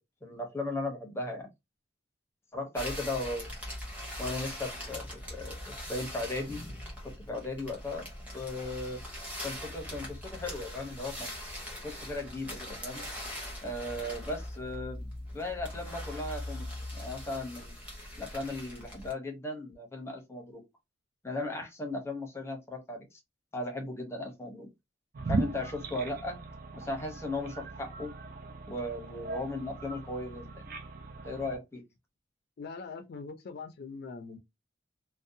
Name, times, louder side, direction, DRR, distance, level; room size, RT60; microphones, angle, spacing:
voice 1, 0.2-1.5 2.5-3.5 4.2-6.6 7.0-8.0 8.3-9.0 9.4-11.3 11.8-13.0 13.6-15.1 15.3-16.7 16.9-17.7 18.2-20.6 21.2-23.2 23.5-24.7 25.3-26.4 26.7-28.1 28.7-30.7 31.2-31.8, left 2 dB, 15° left, 0.7 m, -37 dB
sound 1, 2.7-19.1, left 1 dB, 10° right, 1.0 m, -41 dB
sound 2, 25.1-31.6, right 3 dB, 50° right, 0.5 m, -38 dB
voice 2, 32.6-34.4, left 4 dB, 60° left, 0.4 m, -42 dB
2.6 x 2.1 x 2.6 m
head